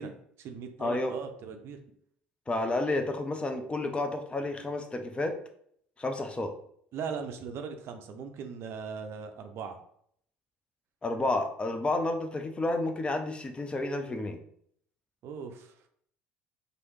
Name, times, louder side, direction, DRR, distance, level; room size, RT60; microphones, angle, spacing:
voice 1, 0.0-1.8 6.9-9.8 15.2-15.7, right 6 dB, 50° right, 6 dB, 0.5 m, -39 dB
voice 2, 0.8-1.1 2.5-5.4 6.0-6.5 11.0-14.4, left 2 dB, 20° left, 5 dB, 0.5 m, -30 dB
3.2 x 2.6 x 3.0 m, 0.66 s
hypercardioid pair, 65°, 5 cm